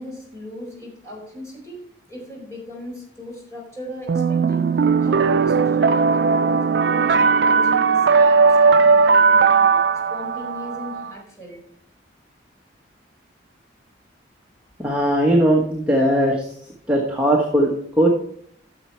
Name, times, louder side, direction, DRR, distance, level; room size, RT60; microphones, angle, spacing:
voice 1, 0.0-1.8 2.1-4.6 5.0-9.7 10.1-11.6, equal, 15° left, -3 dB, 4.4 m, -37 dB
sound 1, 4.1-11.1, right 5 dB, 65° right, 0.4 m, -17 dB
voice 2, 14.8-16.5 16.9-18.1, right 1 dB, 5° right, -2 dB, 1.4 m, -19 dB
13.0 x 6.9 x 4.6 m, 0.65 s
head